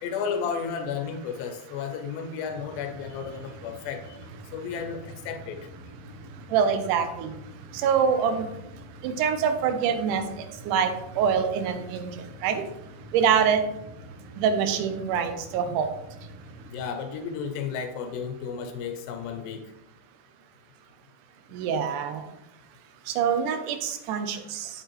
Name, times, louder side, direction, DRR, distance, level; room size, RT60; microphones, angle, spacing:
voice 1, 0.0-4.2 4.5-5.7 16.7-19.7, left 6 dB, 90° left, 6 dB, 2.5 m, -33 dB
sound 1, 2.4-16.7, right 1 dB, 55° right, 2.2 m, -45 dB
voice 2, 6.5-7.3 7.8-8.5 9.0-10.2 10.7-10.9 11.2-12.1 12.4-12.6 13.1-13.6 14.4-15.9 21.5-22.2 23.1-24.7, right 7 dB, 75° right, 7 dB, 2.1 m, -24 dB
7.6 x 6.6 x 3.1 m, 0.85 s
omnidirectional pair, 4.0 m